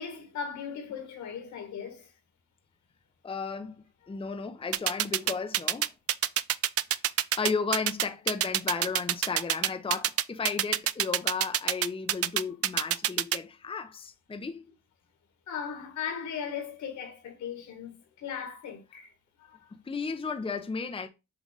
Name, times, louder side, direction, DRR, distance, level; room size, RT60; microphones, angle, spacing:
voice 1, 0.0-2.1 15.5-19.1 19.5-19.6, left 7 dB, 70° left, 2.0 m, -37 dB
voice 2, 3.2-5.9 7.4-14.6 19.7-21.1, left 5 dB, 20° left, 0.7 m, -34 dB
sound 1, 4.7-13.4, right 12 dB, 50° right, 0.5 m, -26 dB
7.3 x 2.5 x 5.2 m
cardioid pair, 90°, 30 cm